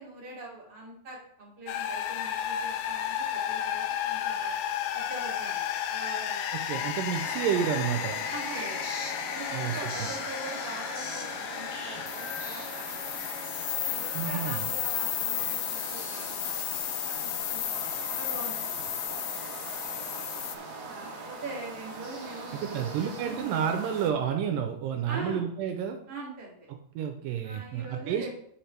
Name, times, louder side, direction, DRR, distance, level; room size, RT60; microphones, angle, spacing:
voice 1, 0.0-4.6 4.9-6.5 8.3-8.9 9.3-13.1 13.8-19.4 19.6-20.3 20.9-23.4 25.1-25.4 26.1-26.7 27.4-28.3, right 2 dB, 35° right, -5 dB, 3.0 m, -43 dB
sound 1, 1.7-20.6, left 10 dB, 85° left, 2.4 m, -33 dB
voice 2, 6.7-8.2 9.5-10.1 14.1-14.7 22.5-26.0 26.7-28.3, right 8 dB, 85° right, 5 dB, 2.2 m, -30 dB
sound 2, 7.1-24.1, right 3 dB, 60° right, 1.0 m, -42 dB
sound 3, 7.9-16.8, left 3 dB, 55° left, 1.2 m, -45 dB
12.0 x 5.0 x 3.3 m, 0.68 s
omnidirectional pair, 4.0 m